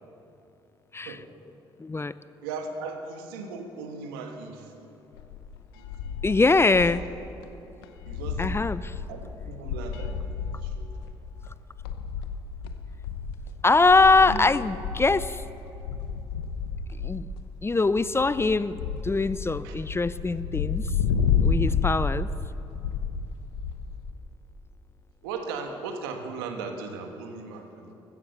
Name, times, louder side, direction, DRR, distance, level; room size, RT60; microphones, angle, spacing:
voice 1, 1.8-2.1 6.2-7.1 8.4-8.9 13.6-15.4 17.0-17.3 17.6-18.8 19.0-20.9 21.4-22.3, left 3 dB, 20° left, 16 dB, 0.6 m, -22 dB
voice 2, 2.4-4.9 5.7-6.1 8.0-8.6 9.1-11.1 14.2-14.4 19.6-19.8 21.7-21.8 25.2-27.9, right 4 dB, 85° right, 5 dB, 1.4 m, -38 dB
sound 1, 5.1-7.1 7.4-7.5 7.8-24.1, left 6 dB, 90° left, 0.8 m, -31 dB
15.5 x 13.5 x 6.8 m, 2.9 s
hypercardioid pair, 55°, 12 cm